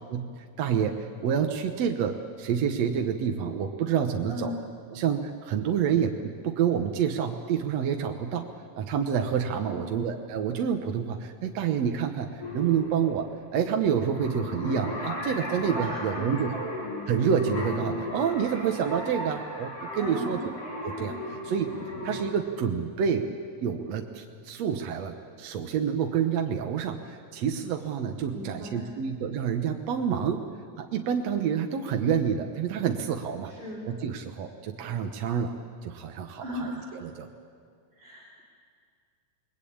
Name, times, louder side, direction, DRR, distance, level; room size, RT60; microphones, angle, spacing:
voice 1, 0.1-4.5 4.9-8.5 8.8-13.3 13.5-16.5 17.1-20.4 20.8-21.7 22.0-23.3 23.6-30.4 30.8-33.5 33.9-35.5 35.8-37.3, right 7 dB, 65° right, 4 dB, 2.2 m, -28 dB
voice 2, 9.6-10.0 15.7-16.3 20.0-20.4 28.3-29.0 33.4-33.9 36.4-37.2 37.9-38.4, equal, 20° right, -6 dB, 4.4 m, -38 dB
sound 1, 12.4-22.2, left 1 dB, 55° left, 5.9 m, -36 dB
28.5 x 21.5 x 8.7 m, 2.2 s
omnidirectional pair, 3.4 m